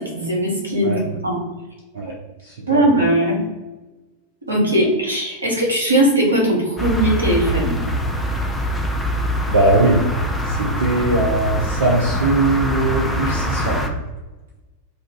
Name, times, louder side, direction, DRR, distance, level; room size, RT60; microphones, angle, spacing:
voice 1, 0.0-1.4 2.7-3.4 4.5-7.8, right 1 dB, 80° right, -3 dB, 1.0 m, -19 dB
voice 2, 2.4-3.0 9.5-10.1 10.4-13.8, right 2 dB, 65° right, -3 dB, 0.6 m, -20 dB
sound 1, 6.8-13.9, equal, 5° left, 0.5 m, -23 dB
2.5 x 2.4 x 3.6 m, 1.1 s
figure-of-eight pair, 90°, 0 cm